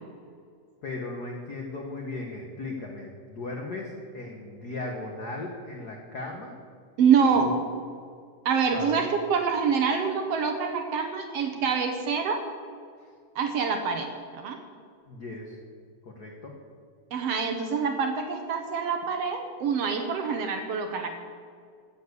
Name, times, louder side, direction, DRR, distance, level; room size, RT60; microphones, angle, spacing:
voice 1, 0.8-6.5 7.4-7.5 8.7-9.0 15.1-15.5 16.0-16.5, left 2 dB, 75° left, 1 dB, 0.8 m, -37 dB
voice 2, 7.0-7.5 8.4-12.4 13.3-14.6 17.1-21.1, right 6 dB, 65° right, 5 dB, 1.6 m, -26 dB
14.5 x 7.1 x 8.1 m, 2.2 s
omnidirectional pair, 3.7 m